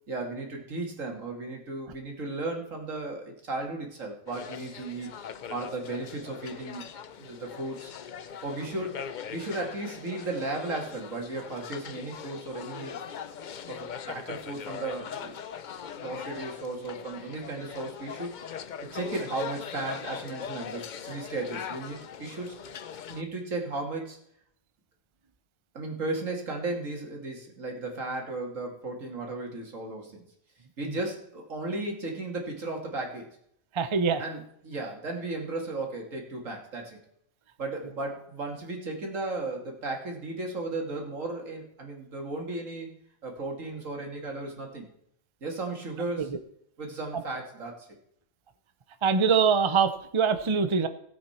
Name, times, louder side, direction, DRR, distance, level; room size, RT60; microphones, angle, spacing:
voice 1, 0.1-5.2 5.5-6.9 7.2-7.9 8.4-13.0 13.7-15.3 16.0-18.3 18.9-22.6 23.1-24.2 25.7-30.2 30.8-33.3 34.2-37.0 37.6-42.9 43.2-44.9 45.4-46.3 46.8-47.9, right 2 dB, 85° right, 1 dB, 2.7 m, -35 dB
sound 1, 4.3-23.2, left 7 dB, 50° left, 0.6 m, -41 dB
voice 2, 33.7-34.2 46.2-46.4 47.1-47.2 49.0-50.9, right 6 dB, 30° right, 10 dB, 0.6 m, -24 dB
17.0 x 7.9 x 4.4 m, 0.71 s
omnidirectional pair, 1.3 m